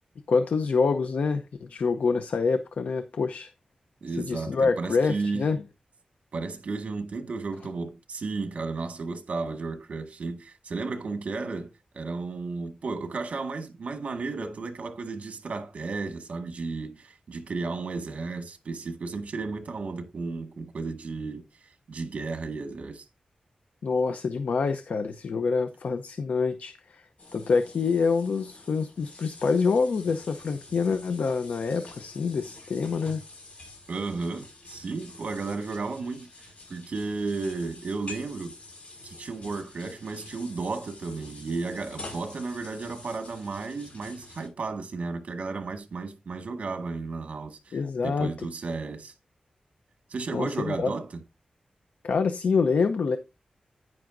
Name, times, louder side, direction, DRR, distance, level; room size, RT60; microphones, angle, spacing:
voice 1, 0.3-1.4 1.7-3.5 4.2-5.6 23.8-27.0 27.3-33.2 47.7-48.3 50.3-50.9 52.0-53.2, left 4 dB, 75° left, 0.7 m, -26 dB
voice 2, 4.0-5.4 6.3-21.4 21.9-23.0 33.9-36.3 36.7-38.5 39.0-49.1 50.1-51.1, right 4 dB, 65° right, 1.7 m, -33 dB
sound 1, 27.2-44.5, left 2 dB, 55° left, 5.3 m, -47 dB
10.5 x 9.7 x 2.6 m
wide cardioid pair, 175°, 3 cm